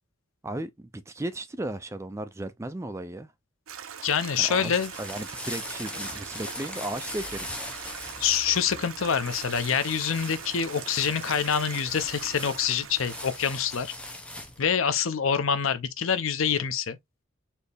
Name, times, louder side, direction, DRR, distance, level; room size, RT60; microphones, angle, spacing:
voice 1, 0.4-3.3 4.4-4.7 5.0-7.6, right 1 dB, 15° right, 0.3 m, -35 dB
Stream, 3.7-13.4, right 8 dB, 75° right, 0.6 m, -41 dB
voice 2, 4.0-4.9 8.2-13.9 14.6-17.0, left 7 dB, 70° left, 0.6 m, -26 dB
sound 1, 4.5-14.7, left 1 dB, 5° left, 0.7 m, -41 dB
4.3 x 2.8 x 3.3 m
head